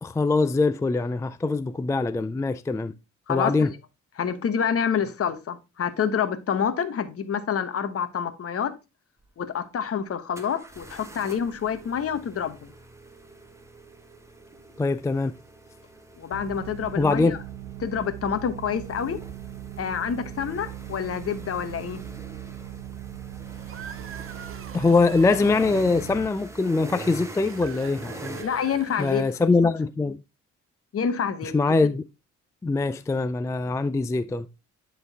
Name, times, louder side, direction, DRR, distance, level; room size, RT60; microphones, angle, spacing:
voice 1, 0.0-2.9 3.3-3.7 14.8-15.3 17.0-17.4 24.7-28.4 29.0-30.2 31.5-32.0 32.6-34.5, left 3 dB, 10° left, 0.3 m, -23 dB
voice 2, 3.3-3.7 4.2-8.8 9.4-12.7 16.2-17.4 17.8-19.2 19.8-22.0 28.4-29.2 29.6-29.7 30.9-31.5, left 7 dB, 50° left, 1.1 m, -27 dB
sound 1, 9.2-9.3 10.3-28.4, right 2 dB, 10° right, 1.3 m, -45 dB
sound 2, 16.3-26.3, right 12 dB, 85° right, 0.6 m, -39 dB
sound 3, 23.4-25.9 27.3-29.7, right 8 dB, 45° right, 0.7 m, -42 dB
11.0 x 3.9 x 3.4 m
cardioid pair, 90°, 30 cm